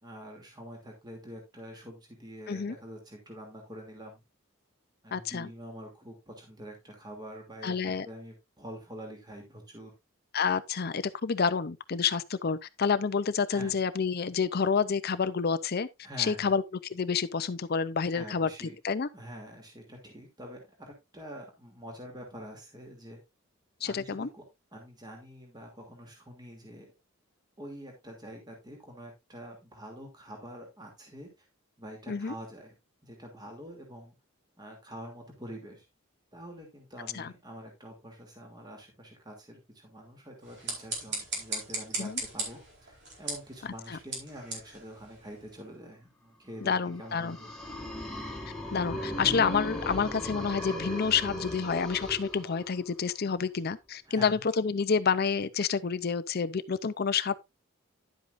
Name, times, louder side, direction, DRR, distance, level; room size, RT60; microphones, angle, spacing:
voice 1, 0.0-4.2 5.0-9.9 13.5-13.8 16.0-16.5 18.1-18.8 19.1-23.2 23.8-24.4 24.7-26.9 27.6-31.5 31.8-32.7 33.0-34.1 34.6-35.8 36.3-47.5 54.1-54.5, equal, 20° right, 2.7 m, -46 dB
voice 2, 5.1-5.5 7.6-8.1 10.3-15.9 16.2-16.6 16.9-19.1 23.8-24.3 32.1-32.3 37.1-37.3 42.0-42.2 43.9-44.0 46.6-47.4 48.7-57.4, left 6 dB, 50° left, 0.5 m, -29 dB
sound 1, 40.4-45.7, right 3 dB, 55° right, 4.3 m, -38 dB
sound 2, 47.0-52.9, left 1 dB, 5° left, 2.1 m, -37 dB
11.0 x 8.2 x 2.5 m
head